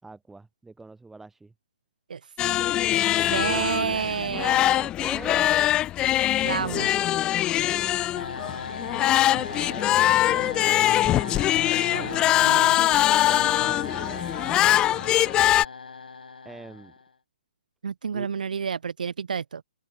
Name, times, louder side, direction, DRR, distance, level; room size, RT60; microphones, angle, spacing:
voice 1, 0.0-1.5 3.1-5.8 6.5-7.9 9.5-11.5 12.7-14.4 16.4-16.9 18.1-18.3, right 3 dB, 5° right, 5.2 m, -44 dB
sound 1, 2.4-15.7, left 13 dB, 20° left, 0.4 m, -23 dB
voice 2, 3.3-4.6 6.4-6.9 11.9-12.8 17.8-19.6, right 6 dB, 70° right, 1.5 m, -29 dB
sound 2, 8.2-17.1, left 4 dB, 80° left, 4.6 m, -37 dB
hypercardioid pair, 135°, 5 cm